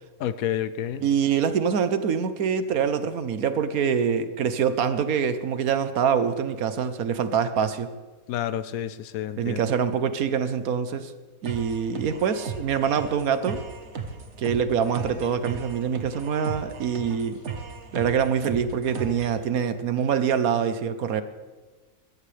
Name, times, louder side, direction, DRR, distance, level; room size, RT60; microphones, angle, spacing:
voice 1, 0.2-1.0 8.3-9.6, left 10 dB, 75° left, 1.1 m, -29 dB
voice 2, 1.0-7.9 9.4-11.1 11.4-13.6 14.4-17.4 17.9-21.2, right 7 dB, 80° right, 1.4 m, -25 dB
sound 1, 11.4-19.4, right 5 dB, 55° right, 1.5 m, -36 dB
21.0 x 14.0 x 3.4 m
omnidirectional pair, 1.5 m